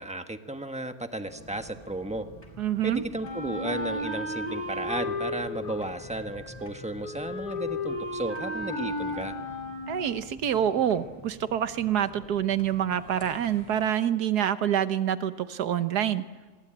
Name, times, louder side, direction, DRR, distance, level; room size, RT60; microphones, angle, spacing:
voice 1, 0.0-2.3 2.8-9.3, right 1 dB, 5° right, 7 dB, 1.0 m, -34 dB
sound 1, 1.3-13.9, right 1 dB, 15° left, 4.2 m, -50 dB
voice 2, 2.6-3.0 9.9-16.2, right 10 dB, 65° right, 12 dB, 1.5 m, -26 dB
Wind instrument woodwind instrument, 3.2-10.2, left 2 dB, 65° left, 6.1 m, -34 dB
26.5 x 21.5 x 8.8 m, 1.3 s
omnidirectional pair, 1.9 m